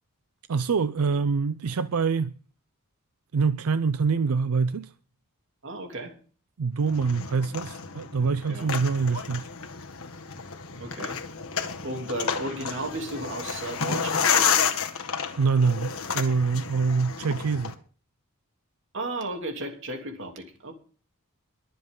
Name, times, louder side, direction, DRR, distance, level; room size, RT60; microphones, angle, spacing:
voice 1, 0.5-2.3 3.3-4.9 6.6-9.5 15.4-17.7, right 5 dB, 85° right, 0.5 m, -25 dB
voice 2, 5.6-6.2 8.5-8.7 10.8-11.2 11.8-14.6 18.9-20.7, right 1 dB, 60° right, 3.0 m, -34 dB
sound 1, 6.9-17.7, left 6 dB, 70° left, 1.7 m, -30 dB
23.0 x 7.7 x 3.8 m
head